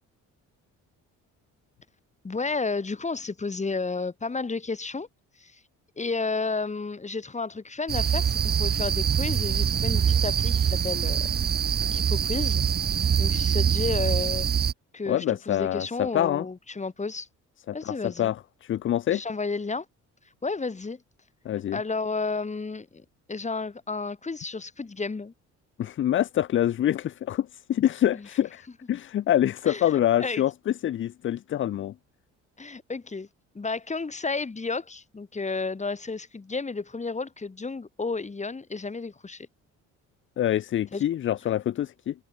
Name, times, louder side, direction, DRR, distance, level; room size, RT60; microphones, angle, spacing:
voice 1, 2.2-5.1 5.4-5.6 6.0-11.3 11.9-12.6 13.2-14.5 14.9-17.3 17.7-18.3 19.1-19.9 20.4-21.0 21.7-25.3 28.1-28.3 29.6-30.4 32.6-33.3 33.5-39.5 40.9-41.0, left 4 dB, 20° left, 4.3 m, -32 dB
sound 1, 7.9-14.7, right 8 dB, 30° right, 0.7 m, -24 dB
voice 2, 15.1-16.4 17.7-19.2 21.4-21.8 25.8-31.9 40.4-42.1, left 11 dB, 40° left, 0.5 m, -26 dB
cardioid pair, 95°, 32 cm